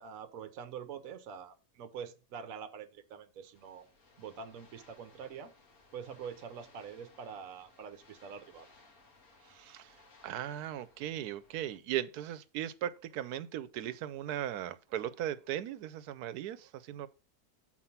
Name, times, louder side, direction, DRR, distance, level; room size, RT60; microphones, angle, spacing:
voice 1, 0.0-3.9 4.2-5.5 5.9-8.7, right 7 dB, 65° right, 1.1 m, -45 dB
sound 1, 3.5-11.8, left 3 dB, 70° left, 1.9 m, -62 dB
voice 2, 9.5-10.0 10.2-17.1, right 11 dB, 85° right, 1.1 m, -38 dB
7.4 x 4.5 x 5.6 m
omnidirectional pair, 1.6 m